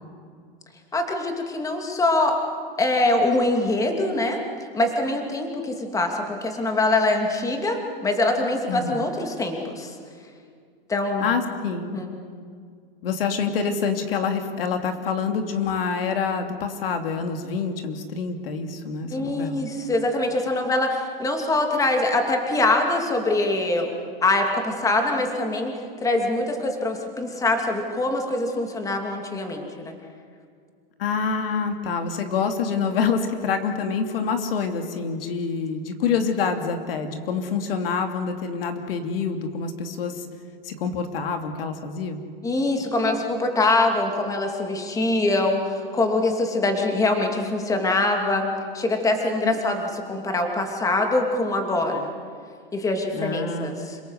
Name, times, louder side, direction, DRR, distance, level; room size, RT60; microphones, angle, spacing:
voice 1, 0.9-2.4 2.8-4.4 4.7-9.9 10.9-11.4 11.9-12.1 19.1-23.9 24.2-25.7 26.0-29.9 42.4-48.5 48.7-52.1 52.7-54.0, left 2 dB, 10° left, 3 dB, 2.7 m, -23 dB
voice 2, 8.7-9.0 11.2-12.0 13.0-19.6 31.0-40.3 40.6-42.2 49.4-49.6 53.1-53.9, left 5 dB, 75° left, 5 dB, 2.8 m, -26 dB
28.0 x 18.0 x 8.2 m, 2.1 s
hypercardioid pair, 140°, 29 cm